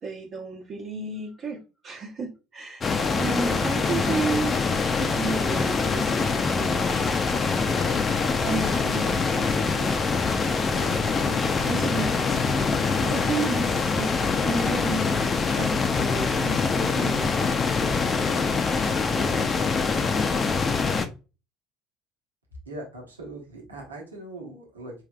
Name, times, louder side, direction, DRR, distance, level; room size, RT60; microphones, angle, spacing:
voice 1, 0.0-7.2 8.4-10.2 10.7-15.3 15.5-18.1 19.1-19.5, right 3 dB, 45° right, 1.1 m, -33 dB
sound 1, 2.8-21.1, left 4 dB, 30° left, 0.6 m, -24 dB
voice 2, 22.6-24.9, right 2 dB, 90° right, 1.2 m, -40 dB
4.6 x 3.3 x 2.4 m
figure-of-eight pair, 65°, 0 cm